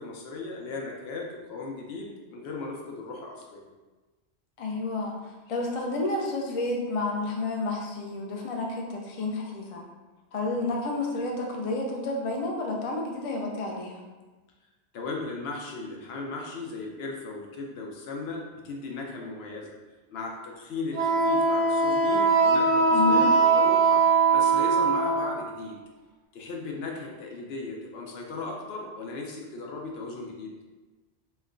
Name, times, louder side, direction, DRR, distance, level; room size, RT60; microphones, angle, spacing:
voice 1, 0.0-3.6 10.5-10.6 14.9-19.8 20.1-24.1 24.3-25.8 26.3-30.5, left 3 dB, 75° left, 0 dB, 0.8 m, -36 dB
voice 2, 4.6-9.8 10.3-14.0 22.9-23.3, left 2 dB, 50° left, 0 dB, 0.4 m, -30 dB
Wind instrument woodwind instrument, 20.9-25.4, right 4 dB, 55° right, 0.5 m, -21 dB
3.1 x 2.2 x 3.6 m, 1.2 s
omnidirectional pair, 1.1 m